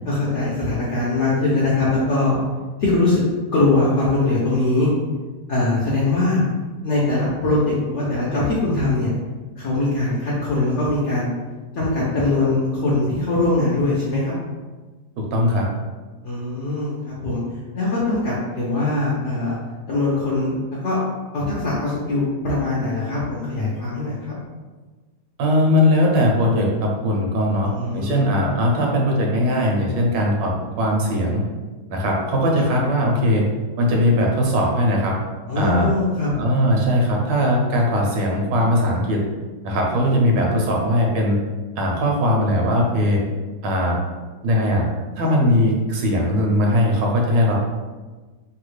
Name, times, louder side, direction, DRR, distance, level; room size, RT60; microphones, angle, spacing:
voice 1, 0.0-2.4 2.8-3.2 3.5-4.9 5.5-6.4 6.8-9.1 9.6-11.3 11.7-14.3 16.2-17.4 17.7-19.6 19.9-21.0 21.3-24.3 27.6-28.2 35.5-36.3 45.2-45.5, left 2 dB, 65° left, -6 dB, 0.7 m, -21 dB
voice 2, 15.2-15.7 25.4-31.4 31.9-33.4 33.8-35.2 35.6-35.9 36.3-39.2 39.6-41.4 41.8-43.2 43.6-44.0 44.4-44.9 45.2-47.6, equal, 85° right, -1 dB, 1.4 m, -19 dB
3.3 x 2.3 x 3.1 m, 1.3 s
omnidirectional pair, 1.9 m